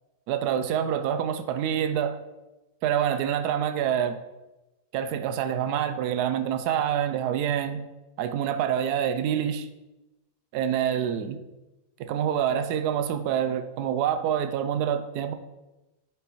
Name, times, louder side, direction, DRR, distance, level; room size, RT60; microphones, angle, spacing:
voice 1, 0.3-2.2 2.8-4.2 4.9-7.9 8.2-9.7 10.5-11.4 12.0-15.3, right 9 dB, 75° right, 9 dB, 1.1 m, -26 dB
9.8 x 5.1 x 3.1 m, 1.0 s
omnidirectional pair, 1.7 m